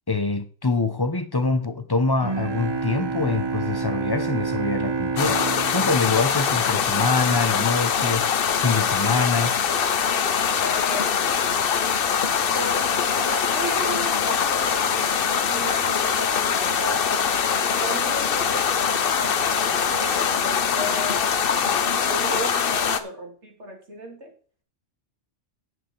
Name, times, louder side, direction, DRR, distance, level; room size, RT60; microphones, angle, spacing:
voice 1, 0.1-5.4 5.7-8.2 8.6-9.6, left 3 dB, 20° left, 0.8 m, -24 dB
Bowed string instrument, 2.2-7.3, right 5 dB, 40° right, 0.4 m, -29 dB
sound 1, 5.2-23.0, left 7 dB, 55° left, 0.9 m, -23 dB
voice 2, 10.6-11.6 12.6-17.3 17.7-24.3, right 1 dB, 65° right, 3.1 m, -35 dB
10.0 x 8.3 x 4.6 m
omnidirectional pair, 1.3 m